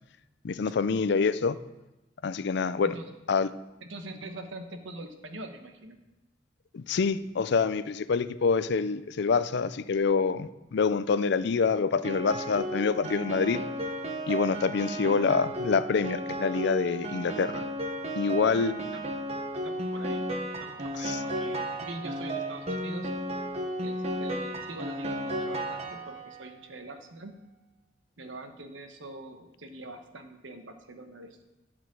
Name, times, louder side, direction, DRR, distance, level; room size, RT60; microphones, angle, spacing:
voice 1, 0.4-1.6 2.2-2.9 3.3-3.5 6.7-13.6 14.3-17.6 18.2-18.8 21.0-21.2, left 5 dB, 65° left, 15 dB, 0.4 m, -26 dB
voice 2, 3.8-6.0 18.5-19.1 19.6-20.3 20.6-23.1 23.8-27.3 28.2-31.5, right 2 dB, 90° right, 7 dB, 1.1 m, -43 dB
Piano, 12.0-26.4, right 1 dB, 35° right, 1.1 m, -34 dB
11.0 x 5.0 x 7.5 m, 1.0 s
head